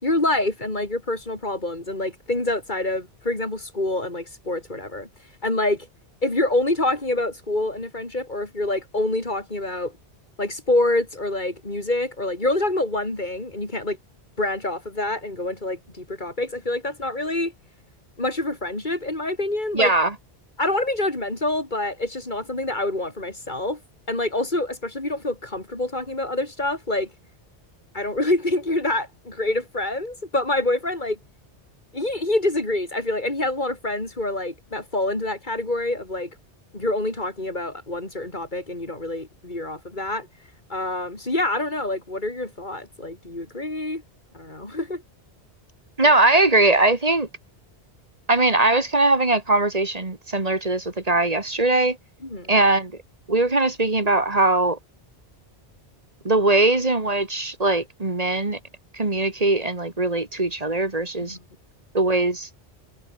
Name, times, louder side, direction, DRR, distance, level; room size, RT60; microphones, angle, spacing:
voice 1, 0.0-5.1 5.4-5.9 6.2-9.9 10.4-14.0 14.4-17.5 18.2-19.9 20.6-23.8 24.1-27.1 27.9-31.2 31.9-36.3 36.7-40.3 40.7-44.0 44.3-45.0 52.2-52.5 61.2-61.4, left 2 dB, 45° left, 4.6 m, -26 dB
voice 2, 19.7-20.1 46.0-47.3 48.3-52.0 52.5-52.9 53.3-54.8 56.2-58.6 59.0-61.4 61.9-62.5, right 2 dB, 35° right, 2.0 m, -20 dB
omnidirectional pair, 1.2 m